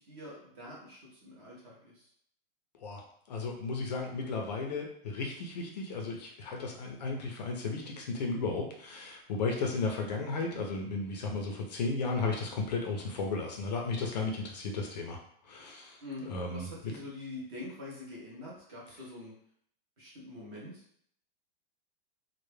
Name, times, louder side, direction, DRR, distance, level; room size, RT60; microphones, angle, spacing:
voice 1, 0.0-2.1 16.0-19.3 20.0-20.8, left 2 dB, 25° right, -4 dB, 0.5 m, -45 dB
voice 2, 3.3-15.2 15.4-16.0 16.3-16.7, left 3 dB, 45° left, 1 dB, 0.4 m, -34 dB
2.1 x 2.1 x 3.1 m, 0.65 s
supercardioid pair, 175°, 30 cm